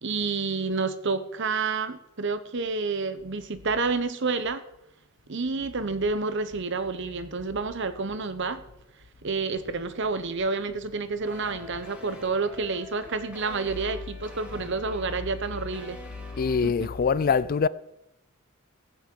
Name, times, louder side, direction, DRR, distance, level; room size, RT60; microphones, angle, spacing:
voice 1, 0.0-4.6 5.3-8.6 9.2-16.0 16.6-16.9, right 4 dB, 60° right, 0.9 m, -29 dB
sound 1, 11.2-16.6, left 1 dB, 5° right, 2.7 m, -46 dB
voice 2, 16.4-17.7, left 5 dB, 45° left, 0.4 m, -23 dB
14.5 x 6.3 x 7.6 m
head